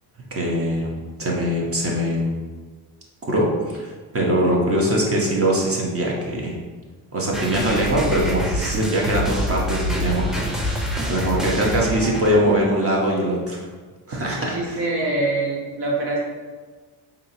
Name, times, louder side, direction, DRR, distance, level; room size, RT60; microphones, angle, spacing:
voice 1, 0.3-0.9 1.2-2.4 3.3-6.6 7.1-13.6 14.1-14.8, right 1 dB, 30° right, -3 dB, 1.0 m, -22 dB
sound 1, 7.3-12.6, equal, ahead, 0.7 m, -26 dB
voice 2, 11.4-11.8 14.4-16.2, right 2 dB, 60° right, -3 dB, 1.3 m, -25 dB
3.8 x 2.9 x 2.7 m, 1.4 s
supercardioid pair, 65°, 45 cm